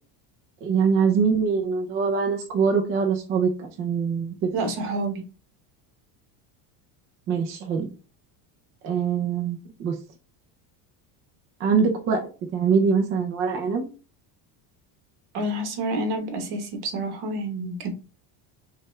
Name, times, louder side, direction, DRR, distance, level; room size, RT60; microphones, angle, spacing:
voice 1, 0.6-4.5 7.3-7.9 8.8-9.9 11.6-12.2 12.5-13.9, right 5 dB, 30° right, 0.3 m, -23 dB
voice 2, 4.5-5.2 15.3-17.9, right 1 dB, 50° right, 1.2 m, -28 dB
5.7 x 2.4 x 3.1 m
cardioid pair, 175°, 47 cm